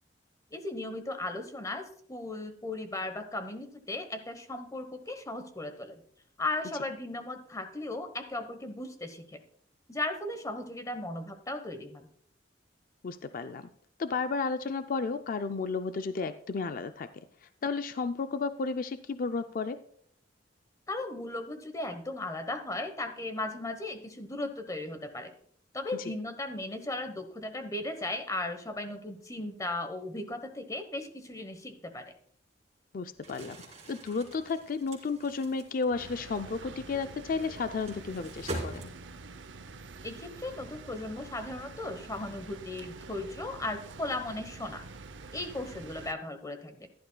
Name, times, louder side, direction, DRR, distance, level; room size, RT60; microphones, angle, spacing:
voice 1, 0.5-6.0 6.4-9.4 9.9-12.1 20.9-25.3 25.7-32.1 40.0-44.8 45.3-46.9, left 2 dB, 20° left, 8 dB, 1.0 m, -36 dB
voice 2, 13.0-13.7 14.0-19.8 32.9-33.6 33.9-38.9, left 4 dB, 50° left, 10 dB, 0.4 m, -33 dB
Crumpling crinkling, 33.1-39.3, right 1 dB, 35° right, 3.2 m, -43 dB
sound 1, 36.0-46.1, right 3 dB, 75° right, 0.7 m, -47 dB
14.5 x 11.5 x 2.2 m, 0.63 s
head